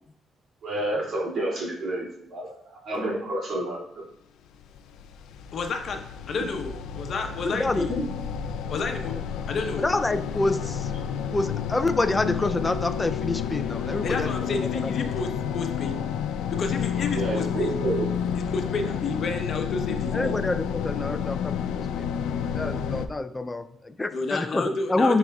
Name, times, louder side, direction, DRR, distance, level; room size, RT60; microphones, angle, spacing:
voice 1, 0.6-2.6 2.8-4.0 7.9-8.0 17.1-18.1 20.1-20.3, right 1 dB, 60° right, -4 dB, 2.6 m, -29 dB
sound 1, 4.6-23.1, left 8 dB, 85° left, 0.3 m, -30 dB
voice 2, 5.5-7.9 8.7-9.2 9.5-9.9 14.0-16.0 16.5-17.8 18.4-20.3 24.1-25.2, left 4 dB, 55° left, 5 dB, 0.9 m, -31 dB
voice 3, 7.4-8.1 9.8-10.9 11.3-15.1 20.1-21.6 22.0-22.1 22.6-25.2, left 2 dB, 20° left, 10 dB, 0.4 m, -27 dB
10.5 x 4.1 x 2.3 m, 0.66 s
cardioid pair, 90°, 0 cm